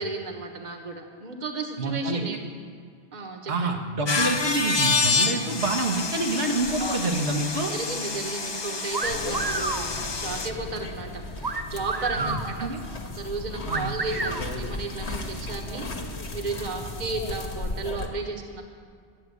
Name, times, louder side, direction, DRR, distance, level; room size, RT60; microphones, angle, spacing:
voice 1, 0.0-2.4 3.1-3.8 6.8-7.0 7.7-12.7 13.1-18.6, right 3 dB, 45° right, 3 dB, 1.4 m, -34 dB
voice 2, 1.8-2.2 3.5-7.7 12.1-12.8 13.7-13.9, right 2 dB, 90° right, 0 dB, 1.8 m, -27 dB
sound 1, 4.1-10.5, left 4 dB, 30° left, 0.6 m, -28 dB
sound 2, 8.9-9.8 11.4-12.4 13.7-14.4, right 3 dB, 25° right, 0.6 m, -29 dB
sound 3, 9.0-18.1, left 2 dB, 90° left, 1.7 m, -35 dB
13.5 x 7.7 x 9.5 m, 2.2 s
omnidirectional pair, 1.1 m